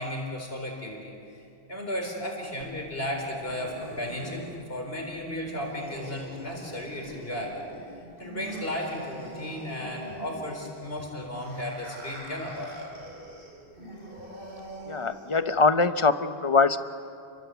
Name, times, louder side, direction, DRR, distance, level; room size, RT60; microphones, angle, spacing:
voice 1, 0.0-1.4 1.7-4.4 4.7-7.7 8.2-12.9, left 1 dB, 65° left, 1 dB, 4.5 m, -34 dB
sound 1, 2.6-15.6, right 1 dB, 55° right, 5.8 m, -44 dB
voice 2, 14.9-16.8, left 4 dB, 30° left, 10 dB, 0.9 m, -23 dB
30.0 x 23.5 x 8.2 m, 2.6 s
omnidirectional pair, 1.1 m